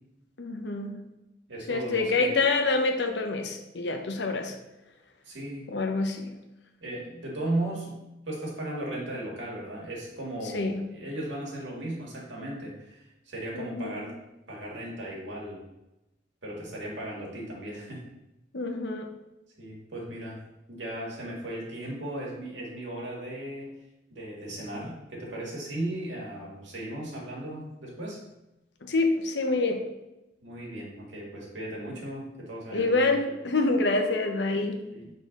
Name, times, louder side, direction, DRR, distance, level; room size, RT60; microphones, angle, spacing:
voice 1, 0.4-1.0 1.7-4.5 5.7-6.3 10.5-10.8 13.5-14.0 18.5-19.1 28.8-29.8 32.7-34.8, left 3 dB, 65° left, 4 dB, 0.8 m, -26 dB
voice 2, 1.5-2.3 5.3-5.7 6.8-7.9 8.3-14.1 14.5-15.7 16.4-18.0 19.6-20.4 20.7-23.8 24.1-28.2 30.4-33.1 34.9-35.1, right 1 dB, 75° right, -3 dB, 1.9 m, -36 dB
6.8 x 3.9 x 3.8 m, 0.95 s
head